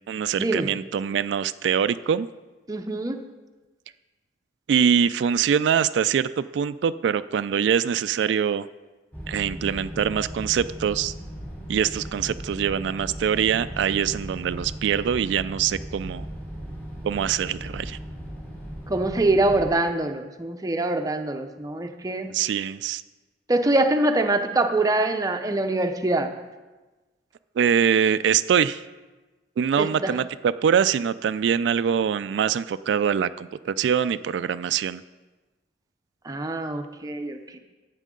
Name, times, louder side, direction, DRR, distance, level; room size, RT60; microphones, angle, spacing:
voice 1, 0.1-2.3 4.7-8.7 9.3-11.1 11.7-16.3 17.0-18.0 22.3-23.0 27.6-28.8 29.6-35.0, right 8 dB, 85° right, 14 dB, 0.3 m, -23 dB
voice 2, 2.7-3.2 18.9-22.3 23.5-26.3 29.8-30.1 36.2-37.6, right 2 dB, 20° right, 5 dB, 0.6 m, -24 dB
sound 1, 9.1-19.7, equal, 10° left, 2.8 m, -37 dB
14.5 x 8.3 x 3.8 m, 1.2 s
head